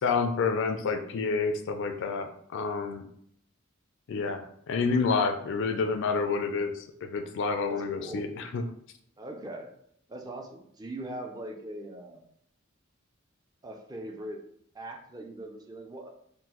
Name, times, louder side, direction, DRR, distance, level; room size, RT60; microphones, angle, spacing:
voice 1, 0.0-3.1 4.1-8.6, left 4 dB, 65° left, 8 dB, 0.3 m, -29 dB
voice 2, 7.6-8.2 9.2-9.7 10.1-12.3 13.6-14.4 14.7-16.1, right 1 dB, 20° right, 2 dB, 0.4 m, -41 dB
3.6 x 2.1 x 2.9 m, 0.67 s
head